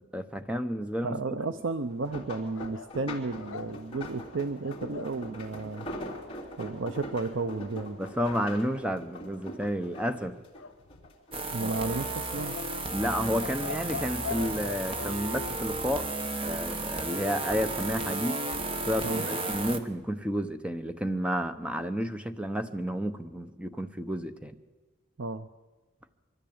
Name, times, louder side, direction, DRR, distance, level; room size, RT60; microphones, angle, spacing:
voice 1, 0.0-1.2 8.0-10.4 12.9-18.4 18.8-24.6, equal, 5° right, 9 dB, 0.9 m, -31 dB
voice 2, 1.0-5.9 6.6-8.0 11.5-12.6 19.0-19.3 25.2-25.5, right 3 dB, 70° right, 11 dB, 0.6 m, -33 dB
sound 1, 1.8-11.4 11.7-12.7 13.1-14.4 15.2-15.5 15.9-16.0, equal, 25° left, 3.0 m, -43 dB
sound 2, 2.5-5.2 10.5-11.4 12.4-15.2, left 6 dB, 85° left, 0.8 m, -42 dB
sound 3, 11.3-19.8, right 2 dB, 25° right, 1.2 m, -33 dB
22.5 x 13.5 x 8.7 m, 1.3 s
head